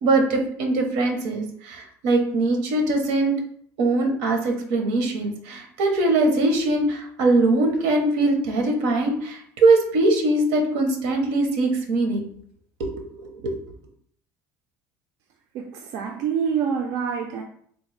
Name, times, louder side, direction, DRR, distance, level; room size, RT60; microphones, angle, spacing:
voice 1, 0.0-3.3 3.8-12.3 12.8-12.9 13.2-13.5, right 2 dB, 90° right, 3 dB, 0.7 m, -22 dB
voice 2, 15.5-17.4, right 7 dB, 60° right, 3 dB, 0.4 m, -26 dB
3.6 x 2.3 x 3.2 m, 0.63 s
cardioid pair, 145°, 7 cm